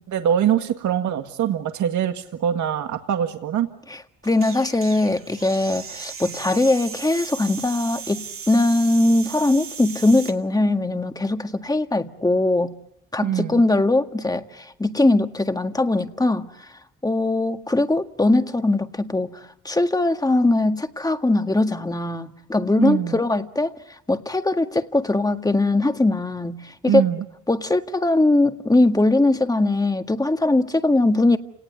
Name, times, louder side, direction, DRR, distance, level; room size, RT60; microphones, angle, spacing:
voice 1, 0.1-3.7 13.2-13.6 22.8-23.2 26.9-27.2, right 9 dB, 70° right, 6 dB, 1.9 m, -23 dB
voice 2, 3.9-12.7 13.1-16.5 17.0-23.8 24.1-27.0 27.5-31.4, left 2 dB, 10° left, 7 dB, 1.7 m, -21 dB
sound 1, 4.2-10.4, right 6 dB, 45° right, 2.7 m, -37 dB
29.5 x 19.0 x 9.6 m, 0.82 s
cardioid pair, 90°, 30 cm